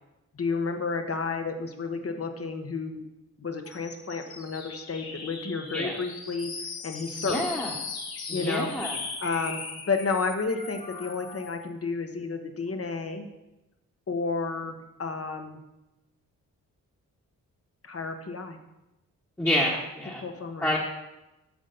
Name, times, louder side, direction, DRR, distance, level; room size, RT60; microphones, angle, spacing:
voice 1, 0.3-3.0 3.4-6.5 6.8-7.5 8.3-8.7 9.2-13.2 14.1-15.6 17.8-18.6 20.2-20.8, left 4 dB, 40° left, 6 dB, 1.2 m, -31 dB
sound 1, 3.6-11.6, left 4 dB, 80° left, 1.2 m, -39 dB
voice 2, 7.2-7.7 8.3-8.9 19.4-20.2 20.6-20.8, left 1 dB, 10° left, -4 dB, 1.4 m, -28 dB
8.3 x 6.3 x 4.0 m, 0.96 s
supercardioid pair, 45°, 36 cm